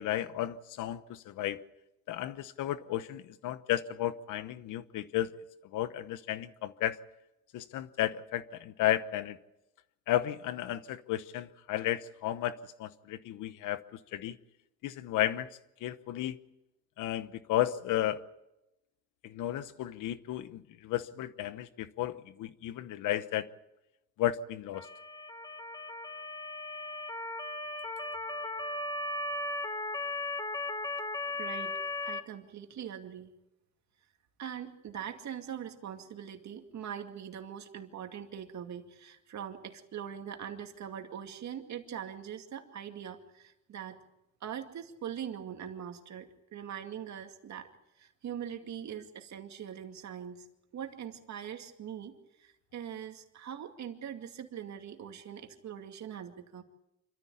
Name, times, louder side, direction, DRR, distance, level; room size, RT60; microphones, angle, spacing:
voice 1, 0.0-1.6 2.1-5.4 5.7-7.0 7.5-9.4 10.1-13.8 14.1-14.4 14.8-15.5 15.8-16.4 17.0-18.2 19.2-23.5 24.2-24.9, left 13 dB, 90° left, 1.0 m, -33 dB
Motor vehicle (road) / Siren, 24.7-32.2, left 2 dB, 15° left, 1.5 m, -37 dB
voice 2, 31.3-33.3 34.4-44.0 44.4-47.7 48.0-50.5 50.7-56.6, right 9 dB, 65° right, 2.4 m, -42 dB
25.5 x 14.0 x 8.5 m
cardioid pair, 90°, 30 cm